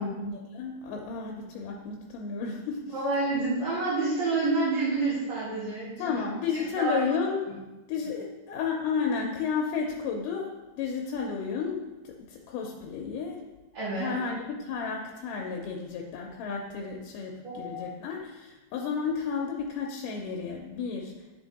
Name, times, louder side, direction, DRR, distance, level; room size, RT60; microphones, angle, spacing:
voice 1, 0.0-3.0 6.0-7.4 7.9-13.4 14.0-21.1, left 5 dB, 80° left, 1 dB, 2.2 m, -32 dB
voice 2, 2.9-6.2 6.8-7.0 13.7-14.1 17.4-17.8, right 3 dB, 55° right, -10 dB, 2.5 m, -28 dB
10.0 x 3.6 x 4.1 m, 1.1 s
omnidirectional pair, 4.0 m